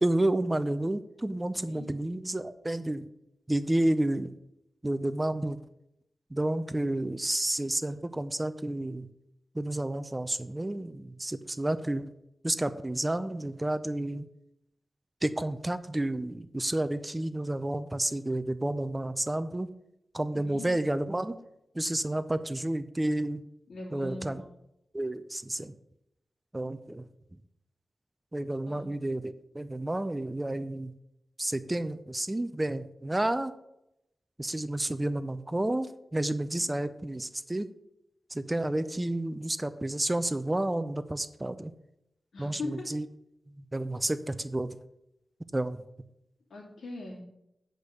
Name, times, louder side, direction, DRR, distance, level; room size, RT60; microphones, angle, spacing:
voice 1, 0.0-3.1 3.5-4.3 4.8-5.6 6.3-9.1 9.6-12.1 12.4-14.3 15.2-19.7 20.1-21.4 21.7-23.4 23.9-24.4 24.9-25.7 26.5-27.0 28.3-30.9 31.4-33.5 34.4-37.7 38.3-41.7 42.4-43.1 43.6-44.7 45.5-45.8, right 1 dB, 15° right, 12 dB, 0.4 m, -30 dB
voice 2, 1.5-1.9 20.3-20.7 23.7-24.5 28.6-28.8 36.4-36.7 42.3-42.9 46.5-47.2, left 2 dB, 85° left, -3 dB, 3.0 m, -41 dB
8.2 x 5.1 x 6.7 m, 0.83 s
wide cardioid pair, 160°, 0 cm